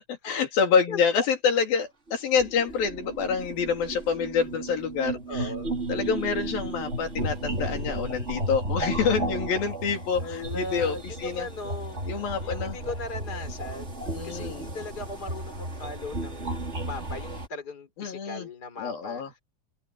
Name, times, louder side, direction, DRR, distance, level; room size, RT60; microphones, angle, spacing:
voice 1, 0.0-5.5 5.9-11.0 11.2-11.5 12.0-12.8 14.1-14.6 18.0-18.5 18.8-19.3, left 6 dB, 85° left, 4.8 m, -27 dB
sound 1, 2.1-17.5, right 2 dB, 20° right, 3.6 m, -34 dB
voice 2, 5.3-5.8 10.2-12.0 12.4-19.4, left 2 dB, 25° left, 3.9 m, -38 dB
omnidirectional pair, 4.1 m